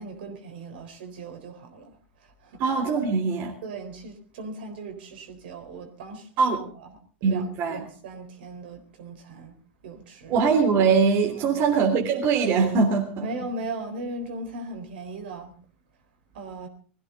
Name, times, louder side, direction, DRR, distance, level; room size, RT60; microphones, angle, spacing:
voice 1, 0.0-2.6 3.6-6.9 7.2-9.5 9.8-10.4 11.3-11.6 13.2-15.6 16.3-16.7, right 2 dB, 60° right, 3.9 m, -38 dB
voice 2, 2.6-3.5 6.4-6.6 7.2-7.8 10.3-13.3, right 5 dB, 45° right, 3.2 m, -22 dB
21.0 x 15.0 x 3.9 m
figure-of-eight pair, 85°, 6 cm